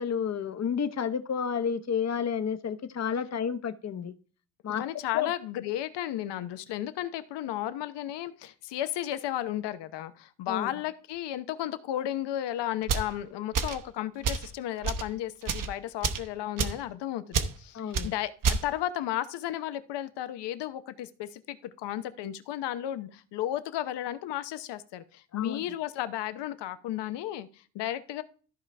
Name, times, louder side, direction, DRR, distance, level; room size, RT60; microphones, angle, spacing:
voice 1, 0.0-4.1 4.6-4.8 5.1-5.3 10.5-10.7 17.7-18.1 25.3-25.6, left 7 dB, 40° left, 0.8 m, -30 dB
voice 2, 4.8-28.2, left 12 dB, 85° left, 0.8 m, -34 dB
sound 1, 12.8-13.1 13.5-13.8 14.2-14.5 14.8-15.1 15.4-15.7 16.0-16.3 16.6-16.8 17.3-17.5 17.9-18.1 18.4-18.6, right 5 dB, 50° right, 1.0 m, -28 dB
14.0 x 4.8 x 3.3 m
cardioid pair, 100°, 41 cm